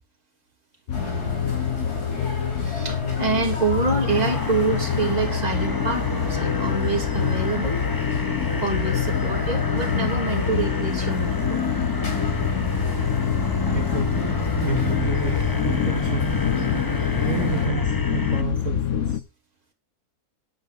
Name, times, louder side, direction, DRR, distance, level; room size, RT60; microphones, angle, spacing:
sound 1, 0.9-17.7, left 1 dB, 80° left, 4.4 m, -34 dB
sound 2, 0.9-19.2, left 9 dB, 60° left, 1.1 m, -26 dB
voice 1, 0.9-1.7 2.5-7.8 8.6-11.6 17.3-17.7, right 4 dB, 25° right, 0 dB, 2.8 m, -27 dB
sound 3, 4.1-18.4, left 3 dB, 20° left, 0.7 m, -29 dB
voice 2, 13.7-16.4 17.3-19.2, right 6 dB, 55° right, 3 dB, 2.0 m, -31 dB
9.8 x 6.9 x 7.5 m, 0.30 s
omnidirectional pair, 1.6 m